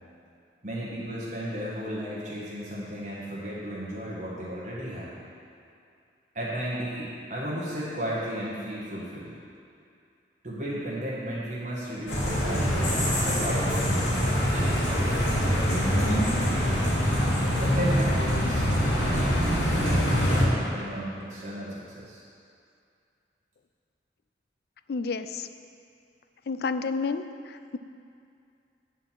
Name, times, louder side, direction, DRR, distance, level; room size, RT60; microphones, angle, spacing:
voice 1, 0.6-5.1 6.3-9.4 10.4-16.3 17.6-22.2, equal, 40° right, -7 dB, 1.4 m, -34 dB
sound 1, 12.1-20.4, equal, 80° left, 2.3 m, -24 dB
voice 2, 24.9-25.5 26.5-27.8, left 4 dB, 60° left, 10 dB, 0.4 m, -30 dB
9.1 x 4.4 x 7.5 m, 2.4 s
head